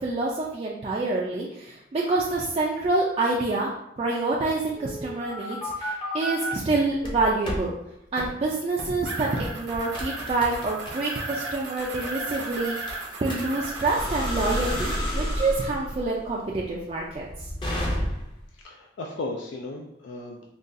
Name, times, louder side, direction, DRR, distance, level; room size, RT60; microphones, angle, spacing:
voice 1, 0.0-3.7 4.0-7.7 8.1-17.3, right 3 dB, 30° right, -4 dB, 0.3 m, -27 dB
sound 1, 4.8-6.5 7.0-7.6 8.2-8.3 8.8-9.0 9.4-18.4, equal, 25° left, 0.6 m, -31 dB
sound 2, 9.0-15.0, right 3 dB, 65° right, 0.7 m, -36 dB
voice 2, 18.6-20.5, left 2 dB, 80° left, 0 dB, 0.4 m, -35 dB
3.7 x 2.3 x 2.6 m, 0.80 s
head